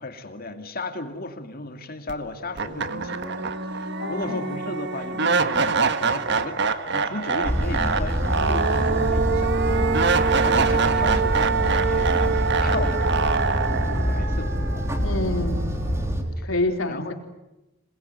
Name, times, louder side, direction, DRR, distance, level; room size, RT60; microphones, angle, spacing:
voice 1, 0.0-3.5 3.7-6.6 6.9-13.3 13.7-14.5 16.4-16.5 16.9-17.1, left 2 dB, 45° left, 6 dB, 2.7 m, -35 dB
sound 1, 2.1-2.2 2.6-15.6, right 4 dB, 60° right, 1.5 m, -24 dB
voice 2, 4.0-4.6 15.0-15.7 16.4-17.1, left 2 dB, 85° left, 3 dB, 4.1 m, -27 dB
sound 2, 7.4-16.2, equal, 15° right, 3.4 m, -26 dB
27.5 x 21.0 x 9.5 m, 1.0 s
head